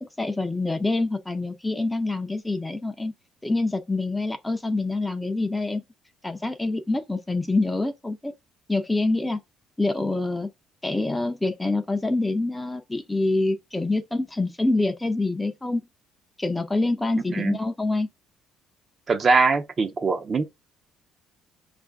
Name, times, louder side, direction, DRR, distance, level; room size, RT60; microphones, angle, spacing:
voice 1, 0.0-3.1 3.4-5.8 6.2-8.3 8.7-9.4 9.8-10.5 10.8-15.8 16.4-18.1, left 2 dB, 10° left, 0.5 m, -26 dB
voice 2, 17.2-17.6 19.1-20.4, right 4 dB, 35° right, 0.6 m, -22 dB
5.2 x 2.5 x 3.4 m
cardioid pair, 115°, 0 cm